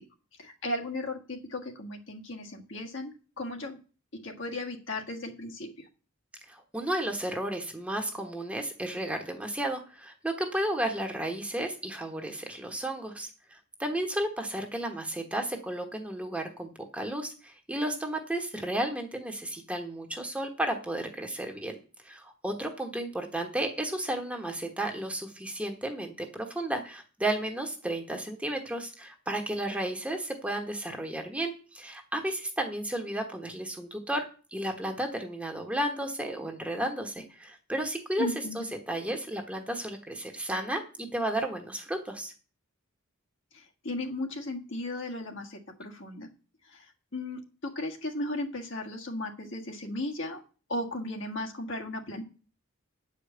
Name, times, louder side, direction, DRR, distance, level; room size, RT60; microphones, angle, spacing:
voice 1, 0.4-3.8 4.1-5.9 38.2-38.7 43.5-46.3 46.7-50.4 50.7-52.2, left 2 dB, 60° left, 1 dB, 1.6 m, -36 dB
voice 2, 6.5-21.8 22.0-34.3 34.5-38.3 38.5-42.3, right 1 dB, 5° right, 3 dB, 1.2 m, -33 dB
9.2 x 5.1 x 7.9 m, 0.37 s
head